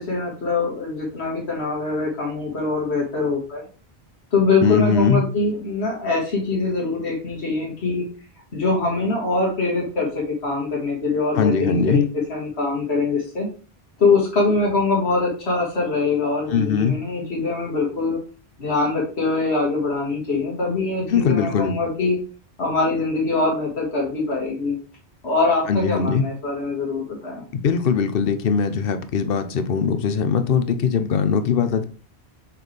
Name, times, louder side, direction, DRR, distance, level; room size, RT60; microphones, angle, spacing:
voice 1, 0.0-3.7 4.3-8.1 8.5-13.5 14.0-18.2 18.6-22.2 22.6-24.8 25.2-27.4, left 3 dB, 85° left, 2.1 m, -23 dB
voice 2, 4.6-5.3 11.3-12.0 16.5-17.0 21.1-21.8 25.7-26.3 27.5-31.9, left 6 dB, 65° left, 0.9 m, -20 dB
6.0 x 4.8 x 3.4 m
omnidirectional pair, 1.1 m